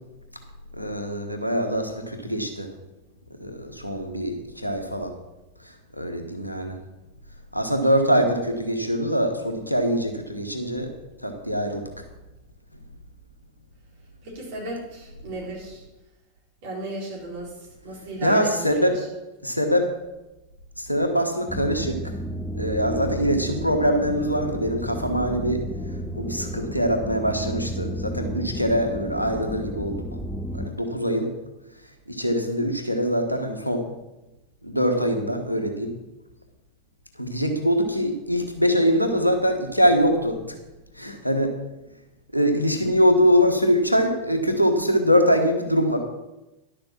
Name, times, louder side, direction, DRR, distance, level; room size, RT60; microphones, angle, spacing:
voice 1, 0.8-2.7 3.4-5.1 6.0-6.7 7.5-10.9 11.2-11.8 18.2-18.9 19.4-19.9 20.8-22.0 22.5-25.6 26.1-30.0 30.5-31.3 32.1-33.9 34.6-35.9 37.2-40.6 41.0-41.5 42.3-46.0, equal, 90° left, 5 dB, 1.2 m, -23 dB
voice 2, 14.2-15.8 16.6-17.5 17.8-19.0, right 1 dB, 50° right, -3 dB, 4.2 m, -35 dB
sound 1, 21.5-30.7, equal, 5° left, 0.7 m, -32 dB
11.0 x 6.8 x 5.9 m, 1.0 s
figure-of-eight pair, 90°, 0 cm